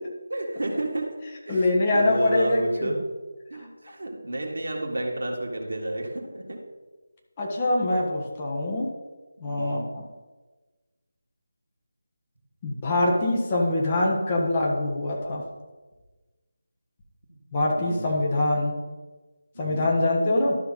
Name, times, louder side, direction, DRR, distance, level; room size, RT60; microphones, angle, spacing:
voice 1, 0.3-1.2 1.5-3.0 3.5-6.6 9.4-9.9 17.3-17.4 17.7-18.4 19.5-19.9, right 1 dB, 60° right, 0 dB, 1.7 m, -31 dB
voice 2, 1.5-2.9 7.4-8.9 9.4-10.0 12.6-15.4 17.5-18.8 19.6-20.6, left 2 dB, 25° left, -2 dB, 1.4 m, -24 dB
12.0 x 5.6 x 4.1 m, 1.3 s
figure-of-eight pair, 160°, 0 cm